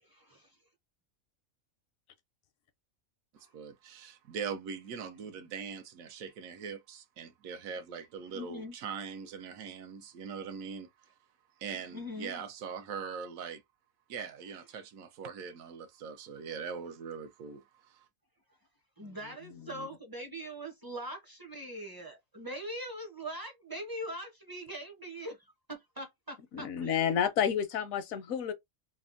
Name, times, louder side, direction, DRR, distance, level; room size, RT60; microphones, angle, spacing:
voice 1, 0.0-0.6 3.4-3.5 8.3-8.8 11.9-12.4 19.0-27.1, equal, 25° right, 0.5 m, -42 dB
voice 2, 3.5-10.9 11.6-13.6 14.1-18.0, right 6 dB, 85° right, 1.1 m, -41 dB
voice 3, 19.6-19.9 26.5-28.5, left 8 dB, 80° left, 1.0 m, -31 dB
3.4 x 2.0 x 2.4 m
omnidirectional pair, 1.4 m